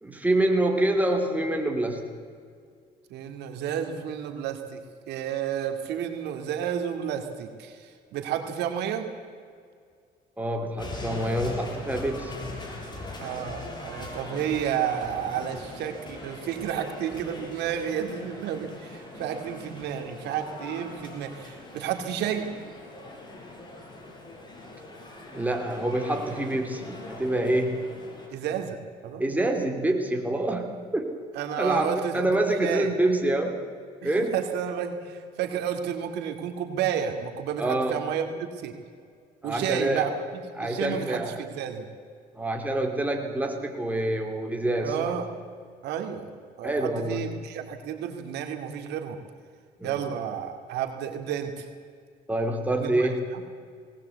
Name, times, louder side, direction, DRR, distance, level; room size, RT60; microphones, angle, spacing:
voice 1, 0.0-2.1 10.4-12.3 25.3-27.8 29.2-31.1 31.6-33.6 34.0-34.3 37.6-38.0 39.4-40.1 40.6-41.4 42.3-45.2 46.6-47.2 49.8-50.0 52.3-53.2, right 1 dB, 10° right, 3 dB, 3.3 m, -26 dB
voice 2, 3.1-4.8 5.1-9.1 13.2-22.5 28.3-28.8 29.0-29.2 31.4-32.3 32.6-32.9 34.0-38.8 39.4-40.1 40.6-41.9 44.8-45.3 45.8-46.3 46.6-49.2 49.8-51.7 52.8-53.4, right 9 dB, 85° right, 5 dB, 2.4 m, -31 dB
sound 1, 10.8-28.3, left 2 dB, 25° left, 5.6 m, -41 dB
19.5 x 19.5 x 8.2 m, 2.1 s
cardioid pair, 110°, 17 cm